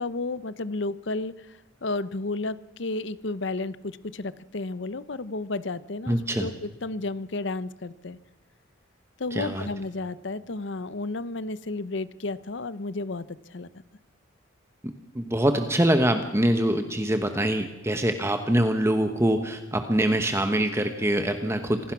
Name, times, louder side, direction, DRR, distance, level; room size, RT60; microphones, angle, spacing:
voice 1, 0.0-8.2 9.2-13.7, left 2 dB, 60° left, 16 dB, 0.8 m, -32 dB
voice 2, 6.1-6.5 9.3-9.7 14.8-21.9, right 1 dB, 15° right, 7 dB, 1.1 m, -24 dB
26.0 x 18.0 x 6.0 m, 1.1 s
head